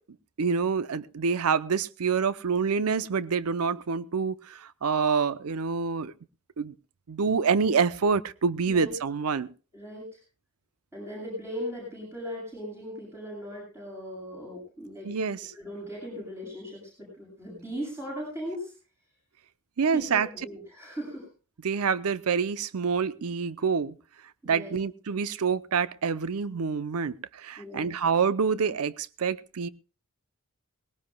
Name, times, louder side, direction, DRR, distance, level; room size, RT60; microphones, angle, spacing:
voice 1, 0.4-6.1 6.6-6.7 7.1-9.5 15.0-15.5 19.8-20.3 21.6-23.9 24.5-29.7, right 5 dB, 75° right, 16 dB, 0.6 m, -27 dB
voice 2, 9.7-10.2 10.9-15.1 15.5-18.7 19.9-21.3 24.4-24.7 27.6-27.9, equal, 10° right, -3 dB, 7.4 m, -38 dB
20.0 x 18.0 x 2.2 m, 0.35 s
head